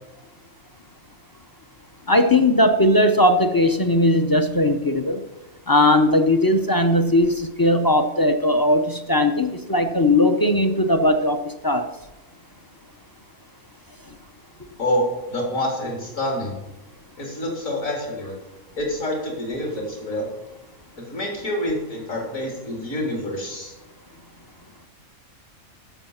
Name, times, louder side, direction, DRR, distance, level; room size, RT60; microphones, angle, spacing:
voice 1, 2.1-5.2 5.7-11.9, left 1 dB, 30° left, 8 dB, 0.4 m, -18 dB
voice 2, 14.8-16.6 17.2-18.4 18.8-20.3 21.0-23.7, left 1 dB, 70° left, 0 dB, 4.0 m, -27 dB
12.5 x 6.4 x 7.3 m, 0.98 s
omnidirectional pair, 1.4 m